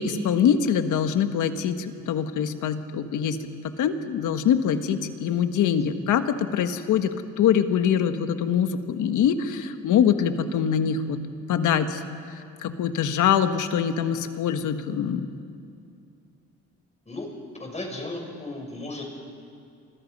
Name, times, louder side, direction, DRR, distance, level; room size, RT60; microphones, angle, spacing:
voice 1, 0.0-3.4 3.6-11.2 11.5-12.0 12.3-15.3, left 8 dB, 80° left, 8 dB, 1.6 m, -24 dB
voice 2, 17.6-19.0, left 2 dB, 20° left, 1 dB, 6.9 m, -35 dB
30.0 x 25.5 x 5.5 m, 2.4 s
cardioid pair, 90°, 30 cm